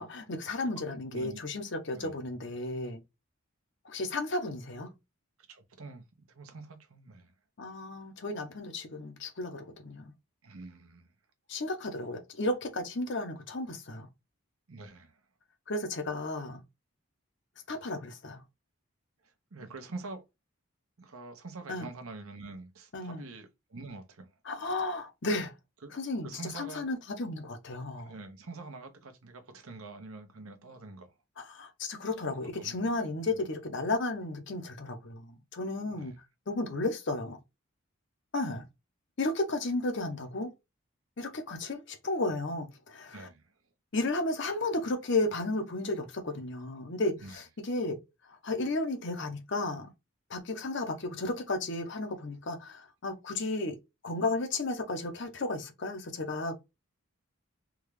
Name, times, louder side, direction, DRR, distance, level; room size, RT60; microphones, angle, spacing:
voice 1, 0.0-3.0 3.8-4.9 7.6-10.1 11.5-14.1 15.7-16.6 17.7-18.4 21.7-21.9 22.9-23.2 24.5-25.5 25.9-26.3 26.6-28.1 31.4-36.1 36.5-37.4 38.3-38.7 39.2-40.5 41.2-43.3 43.9-48.0 48.4-49.9 50.3-53.8 54.0-56.6, left 2 dB, 55° left, 0.7 m, -33 dB
voice 2, 0.6-1.4 1.9-2.1 5.5-7.3 10.4-11.1 14.7-15.2 19.2-20.2 21.0-24.3 25.8-25.9 26.2-26.9 28.0-31.1 32.4-32.9 33.3-33.4 35.9-36.2 43.1-43.5 47.1-47.4, right 3 dB, 75° right, 0.9 m, -46 dB
3.6 x 2.3 x 3.1 m
head